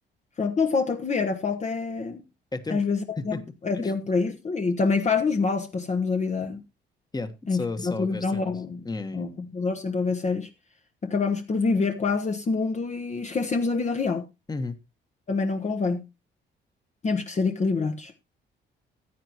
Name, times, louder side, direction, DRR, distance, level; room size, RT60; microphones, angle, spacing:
voice 1, 0.4-2.2 2.7-6.6 7.5-8.9 9.1-10.5 11.0-14.3 15.3-16.1 17.0-18.1, left 4 dB, 35° left, 1.1 m, -26 dB
voice 2, 7.1-8.5 8.8-9.2 14.5-14.8, left 3 dB, 20° left, 1.3 m, -33 dB
14.5 x 9.0 x 2.9 m
cardioid pair, 90°, 20 cm